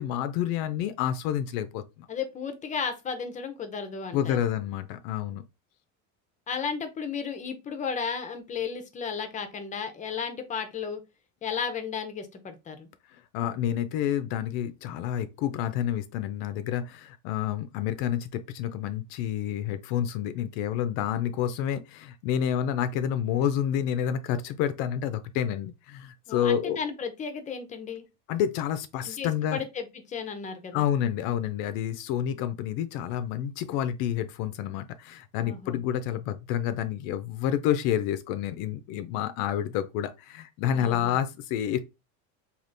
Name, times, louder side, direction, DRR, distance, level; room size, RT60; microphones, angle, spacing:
voice 1, 0.0-2.1 4.1-5.4 13.1-26.8 28.3-29.6 30.7-41.8, left 10 dB, 70° left, 0.5 m, -29 dB
voice 2, 2.1-4.4 6.5-11.0 11.4-12.9 26.3-28.1 29.0-30.9 35.4-35.8 40.7-41.2, left 6 dB, 20° left, 0.5 m, -34 dB
3.4 x 2.4 x 2.5 m
cardioid pair, 140°, 34 cm